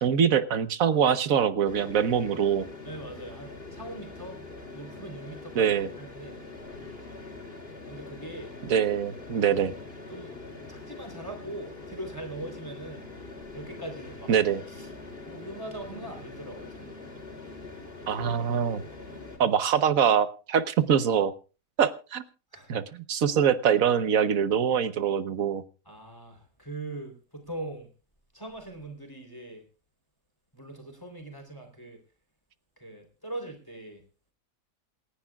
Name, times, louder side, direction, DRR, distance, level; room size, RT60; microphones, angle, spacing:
voice 1, 0.0-2.7 5.6-5.9 8.7-9.7 14.3-14.6 18.1-18.8 19.4-21.3 21.8-22.2 22.7-25.6, right 8 dB, 65° right, 12 dB, 1.4 m, -24 dB
sound 1, 1.6-19.4, left 3 dB, 40° left, 3.5 m, -43 dB
voice 2, 2.8-4.4 4.7-6.4 7.9-8.5 10.1-10.3 10.7-13.1 13.5-14.3 14.7-14.9 15.3-17.0 22.5-22.7 25.9-27.9 28.3-29.6 30.5-32.0 32.8-34.0, right 2 dB, 15° left, 3 dB, 3.5 m, -41 dB
27.5 x 10.0 x 2.4 m, 0.34 s
omnidirectional pair, 1.6 m